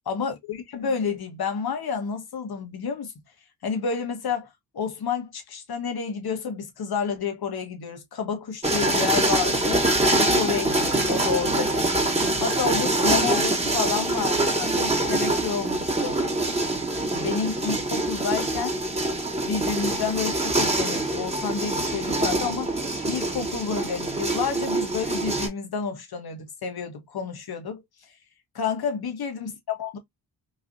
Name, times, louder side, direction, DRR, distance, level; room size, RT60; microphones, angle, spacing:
voice 1, 0.1-3.1 3.6-4.5 4.7-11.9 12.4-16.2 17.1-18.8 19.4-22.8 23.0-27.8 28.6-30.0, left 6 dB, 50° left, 1.2 m, -30 dB
sound 1, 8.6-25.5, right 2 dB, 15° right, 1.2 m, -24 dB
3.1 x 2.4 x 2.5 m
supercardioid pair, 45°, 46 cm